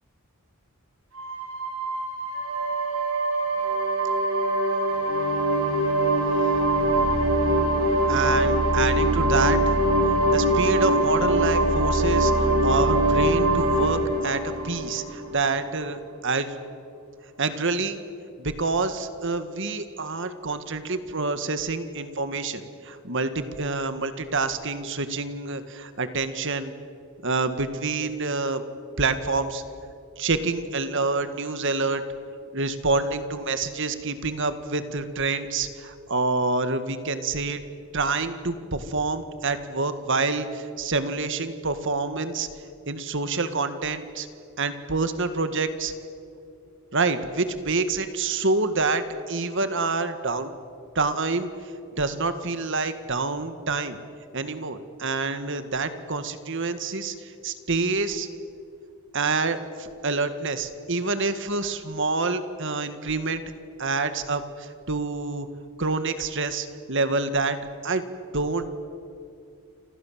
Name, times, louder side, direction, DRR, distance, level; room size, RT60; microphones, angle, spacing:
sound 1, 1.2-15.6, right 1 dB, 75° right, 6.0 m, -23 dB
voice 1, 8.1-9.6 10.3-16.0 16.2-16.5 17.4-18.0 18.4-26.7 27.2-28.6 29.0-29.6 30.2-32.0 32.5-37.6 37.9-42.5 42.9-44.3 44.6-45.9 46.9-50.5 51.0-51.5 52.0-54.0 54.3-58.3 59.1-63.4 63.8-65.5 65.8-68.1 68.3-68.7, right 3 dB, 55° right, 10 dB, 1.9 m, -27 dB
29.0 x 26.0 x 7.6 m, 2.4 s
head